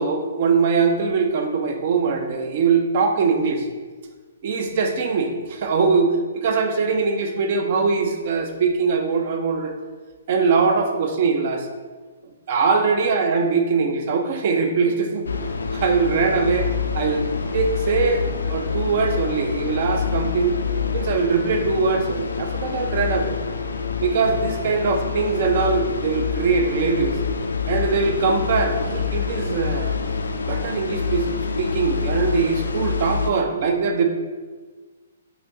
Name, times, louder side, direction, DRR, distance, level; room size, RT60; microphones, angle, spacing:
voice 1, 0.0-3.7 4.4-9.7 10.3-11.7 12.5-15.3 15.7-17.2 17.5-20.6 20.9-23.4 24.0-27.2 27.7-30.0 30.4-31.3 31.6-34.0, right 4 dB, 45° right, 5 dB, 0.5 m, -22 dB
sound 1, 15.2-33.3, left 5 dB, 70° left, 0.3 m, -26 dB
4.9 x 2.7 x 2.8 m, 1.4 s
figure-of-eight pair, 125°, 0 cm